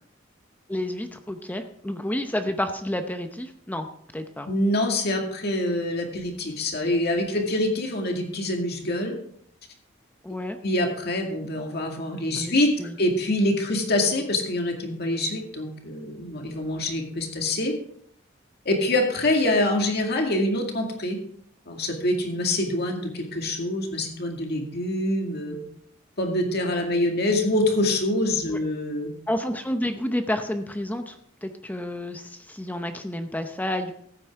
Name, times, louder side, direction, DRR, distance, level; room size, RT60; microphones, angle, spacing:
voice 1, 0.7-3.9 4.1-4.5 10.2-10.6 12.4-12.5 12.8-13.0 29.3-33.9, left 1 dB, 10° left, 7 dB, 0.7 m, -30 dB
voice 2, 4.5-9.2 10.6-12.7 13.0-17.7 18.7-21.2 21.7-25.6 26.2-29.1, left 1 dB, 60° left, 2 dB, 2.2 m, -25 dB
14.5 x 9.2 x 3.7 m, 0.65 s
head